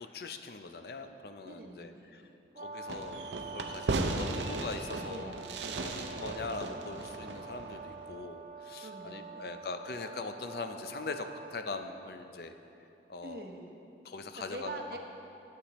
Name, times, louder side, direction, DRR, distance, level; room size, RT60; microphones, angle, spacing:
voice 1, 0.1-2.2 2.6-3.2 3.5-5.4 5.8-12.5 13.1-13.4 14.0-14.8, left 3 dB, 60° left, 7 dB, 0.5 m, -41 dB
voice 2, 1.4-2.3 5.1-6.1 8.8-9.6 13.2-13.8 14.3-15.0, right 2 dB, 55° right, 1 dB, 0.9 m, -45 dB
Brass instrument, 2.5-11.6, right 4 dB, 35° right, 0.4 m, -46 dB
Fireworks, 2.9-8.1, right 2 dB, 85° right, 0.6 m, -36 dB
13.0 x 8.2 x 3.0 m, 2.9 s
head